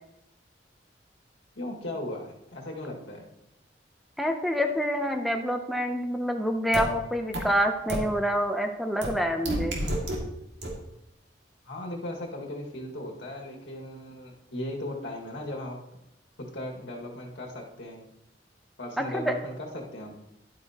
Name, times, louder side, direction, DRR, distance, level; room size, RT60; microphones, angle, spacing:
voice 1, 1.6-3.3 11.7-15.8 16.4-18.0 18.8-20.1, left 1 dB, 80° left, -1 dB, 1.9 m, -37 dB
voice 2, 4.2-9.8 19.0-19.3, equal, ahead, 4 dB, 0.6 m, -27 dB
sound 1, 6.7-6.8 7.3-7.4 7.9-8.0 9.0-9.1 9.5-10.2 10.6-10.7, right 1 dB, 75° right, 2.1 m, -28 dB
11.0 x 8.7 x 2.9 m, 0.86 s
head